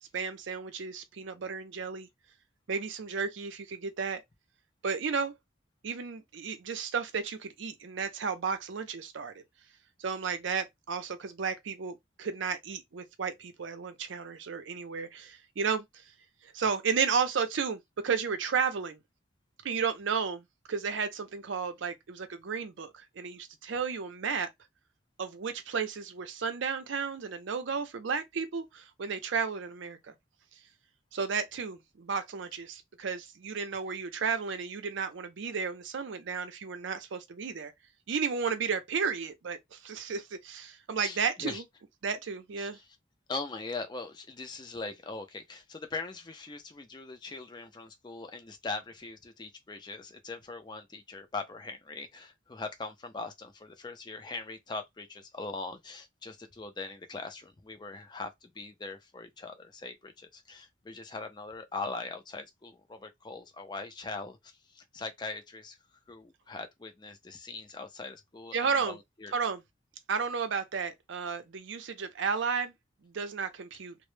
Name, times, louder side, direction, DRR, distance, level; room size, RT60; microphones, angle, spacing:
voice 1, 0.1-2.1 2.7-4.2 4.8-5.3 5.8-9.4 10.0-16.0 16.4-19.0 19.6-24.5 25.2-30.0 31.1-37.7 38.1-41.6 42.0-42.8 68.5-69.0 69.3-69.6 70.1-72.7 73.0-74.0, right 5 dB, 70° right, 0.5 m, -33 dB
voice 2, 41.0-41.6 42.6-42.9 43.3-65.8 66.1-69.3, left 3 dB, 20° left, 0.3 m, -41 dB
2.0 x 2.0 x 3.1 m
head